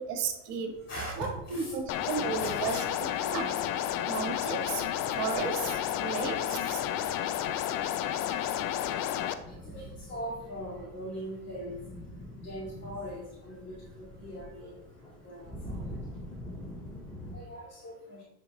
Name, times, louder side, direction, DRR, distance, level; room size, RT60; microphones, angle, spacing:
voice 1, 0.0-0.8 1.2-2.8 3.3-3.5 4.1-4.8 5.1-6.8, right 6 dB, 60° right, 5 dB, 1.8 m, -34 dB
sound 1, 0.7-17.4, equal, ahead, 2.8 m, -47 dB
voice 2, 0.9-1.7 2.4-2.8 9.7-9.8 10.1-11.7 12.4-13.8 14.2-14.7 15.2-15.8 17.3-18.2, equal, 25° left, -7 dB, 2.5 m, -40 dB
sound 2, 1.9-9.3, left 11 dB, 45° left, 0.7 m, -31 dB
10.0 x 4.7 x 3.7 m, 0.93 s
hypercardioid pair, 90°, 46 cm